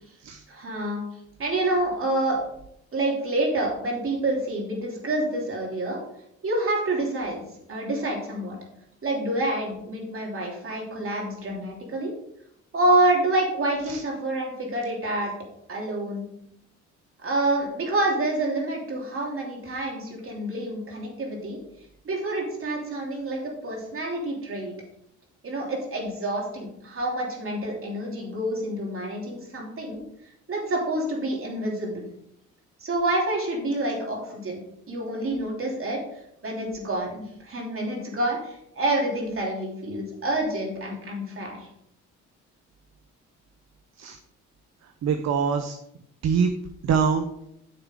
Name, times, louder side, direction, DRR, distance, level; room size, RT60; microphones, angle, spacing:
voice 1, 0.5-1.0 1.4-2.4 2.9-6.0 6.4-7.4 7.7-8.6 9.0-12.1 12.7-15.3 15.7-16.3 17.2-21.6 22.0-24.7 25.4-30.0 30.5-32.1 32.8-34.6 34.9-41.7, right 1 dB, 45° right, -1 dB, 3.1 m, -27 dB
voice 2, 45.0-45.8 46.2-46.5 46.8-47.3, right 6 dB, 60° right, 7 dB, 0.8 m, -24 dB
9.8 x 6.9 x 3.7 m, 0.75 s
cardioid pair, 90°, 30 cm